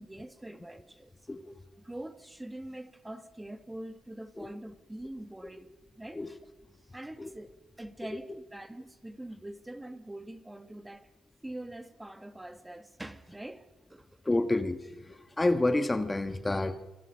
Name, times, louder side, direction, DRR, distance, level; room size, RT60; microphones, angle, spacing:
voice 1, 0.0-1.1 1.8-5.7 6.0-6.4 6.9-11.1 11.4-14.2, right 1 dB, 10° right, 1.5 m, -44 dB
voice 2, 14.3-16.8, left 2 dB, 15° left, 1.3 m, -29 dB
27.5 x 23.0 x 6.5 m
cardioid pair, 90°, 0 cm